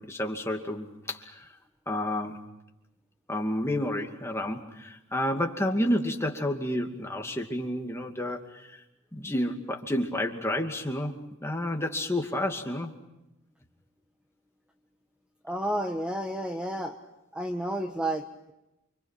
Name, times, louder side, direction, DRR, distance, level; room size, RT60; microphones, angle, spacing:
voice 1, 0.0-1.5 1.9-2.4 3.3-8.8 9.1-12.9, left 1 dB, 15° left, 2 dB, 2.5 m, -30 dB
voice 2, 15.4-17.0 17.3-18.5, right 1 dB, 5° right, 3 dB, 1.3 m, -31 dB
30.0 x 26.5 x 5.9 m, 0.93 s
head